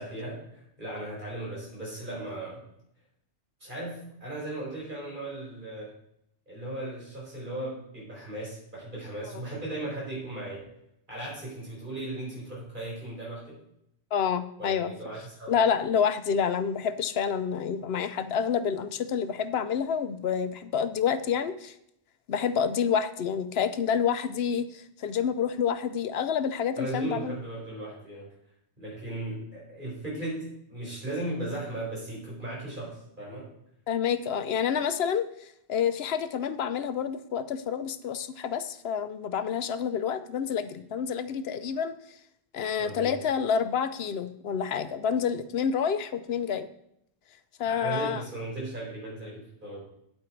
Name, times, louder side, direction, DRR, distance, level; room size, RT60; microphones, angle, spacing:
voice 1, 0.0-2.6 3.6-5.9 6.5-10.6 11.1-13.6 14.6-15.6 26.8-28.3 28.8-33.5 42.8-43.1 47.6-49.8, right 1 dB, 50° right, -5 dB, 4.7 m, -37 dB
voice 2, 14.1-14.9 15.5-21.7 22.3-27.4 33.9-41.9 42.5-46.7 47.6-48.2, left 7 dB, 70° left, 12 dB, 0.9 m, -28 dB
8.7 x 8.6 x 4.5 m, 0.75 s
omnidirectional pair, 1.1 m